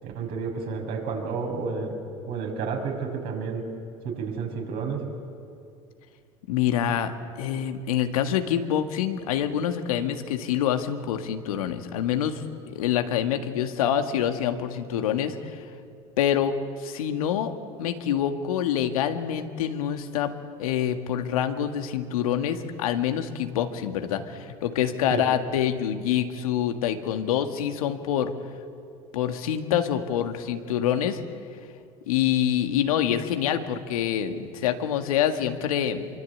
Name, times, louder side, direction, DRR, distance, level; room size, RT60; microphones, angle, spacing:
voice 1, 0.0-3.7 4.0-5.1 25.1-25.2, right 5 dB, 60° right, 2 dB, 6.3 m, -31 dB
voice 2, 6.5-12.4 12.7-15.6 16.2-16.5 16.8-17.5 17.8-20.3 20.6-28.3 29.1-31.2 32.1-36.1, left 9 dB, 80° left, 7 dB, 1.9 m, -26 dB
25.5 x 24.0 x 8.6 m, 2.4 s
hypercardioid pair, 80°, 18 cm